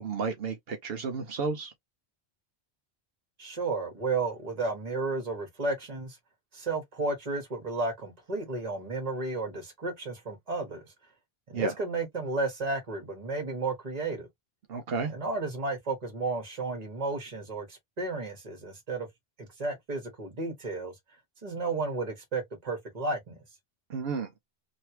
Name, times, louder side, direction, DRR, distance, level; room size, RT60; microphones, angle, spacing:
voice 1, 0.0-1.7 11.5-11.7 14.7-15.1 23.9-24.3, right 4 dB, 70° right, 0.9 m, -32 dB
voice 2, 3.4-6.2 6.5-10.9 11.5-14.3 15.1-19.1 19.4-21.0 21.4-23.4, right 3 dB, 40° right, 1.5 m, -33 dB
3.2 x 2.8 x 2.8 m
omnidirectional pair, 1.1 m